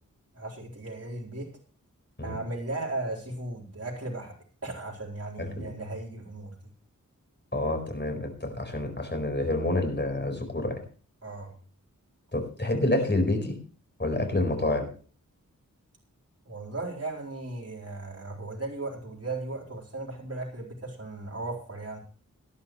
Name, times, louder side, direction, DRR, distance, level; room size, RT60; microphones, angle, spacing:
voice 1, 0.3-1.5 2.2-4.3 4.6-6.5 11.2-11.5 16.4-22.0, right 2 dB, 45° right, -2 dB, 4.2 m, -36 dB
voice 2, 5.4-5.7 7.5-10.8 12.3-13.5 14.0-14.9, left 2 dB, 35° left, 4 dB, 4.6 m, -28 dB
18.5 x 11.5 x 3.2 m, 0.40 s
wide cardioid pair, 55°, 33 cm